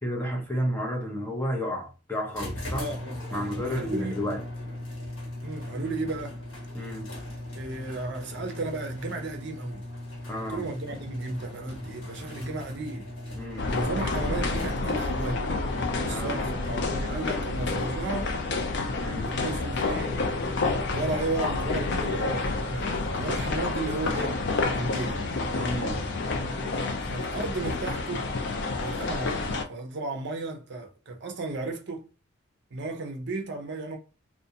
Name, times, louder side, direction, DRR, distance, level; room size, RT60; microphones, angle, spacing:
voice 1, 0.0-2.9 3.3-4.4 6.7-7.1 10.3-10.6 13.3-13.7 16.1-16.4 19.0-19.3 23.5-23.6 25.5-26.1, equal, 10° left, 0.6 m, -31 dB
sound 1, 2.3-15.1, left 1 dB, 75° left, 1.1 m, -39 dB
voice 2, 2.8-4.2 5.4-6.4 7.5-9.8 10.5-13.1 13.7-15.5 16.0-18.4 19.2-20.3 20.9-24.3 24.7-25.2 27.0-28.3 28.8-32.1 32.7-34.0, right 3 dB, 60° right, 0.6 m, -34 dB
sound 2, 13.6-29.7, left 3 dB, 60° left, 0.4 m, -29 dB
2.5 x 2.1 x 2.7 m
head